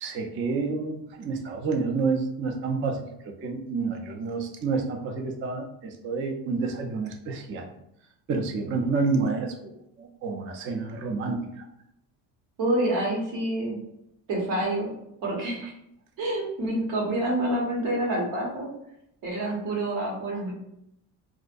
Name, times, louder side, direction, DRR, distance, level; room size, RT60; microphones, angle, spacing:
voice 1, 0.0-3.1 3.4-7.7 8.3-11.7 19.4-19.6 20.3-20.4, right 4 dB, 30° right, 3 dB, 0.3 m, -29 dB
voice 2, 12.6-13.8 14.3-14.9 15.2-15.7 16.2-18.7 19.2-20.5, right 1 dB, 80° right, -3 dB, 1.2 m, -27 dB
2.5 x 2.1 x 2.5 m, 0.80 s
supercardioid pair, 75°, 45 cm